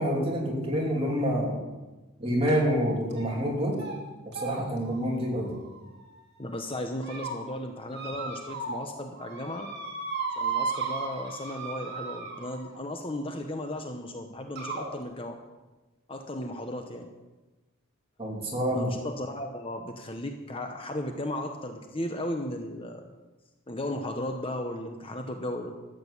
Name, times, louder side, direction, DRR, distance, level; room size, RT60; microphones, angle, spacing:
voice 1, 0.0-1.6 2.2-3.8 4.3-5.6 18.2-19.0, equal, 25° right, -2 dB, 3.1 m, -27 dB
sound 1, 2.5-2.7 3.1-3.5 3.7-4.0 4.3-6.2 6.8-7.3 7.9-8.9 9.2-12.8 13.8-13.9 14.6-14.9, right 4 dB, 50° right, 2.7 m, -36 dB
voice 2, 6.4-9.7 10.4-15.4 16.1-17.1 18.7-23.1 23.7-25.7, left 1 dB, 25° left, 4 dB, 0.9 m, -35 dB
13.5 x 7.7 x 8.4 m, 1.2 s
head